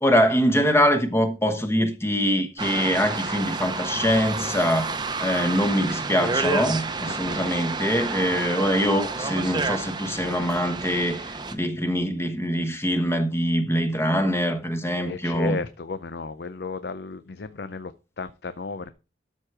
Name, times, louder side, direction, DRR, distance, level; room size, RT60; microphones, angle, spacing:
voice 1, 0.0-15.6, equal, 15° left, 1.1 m, -23 dB
sound 1, 2.6-11.5, right 3 dB, 25° right, 0.8 m, -30 dB
voice 2, 7.1-7.5 14.9-18.9, left 4 dB, 60° left, 0.5 m, -34 dB
12.5 x 4.5 x 4.8 m
head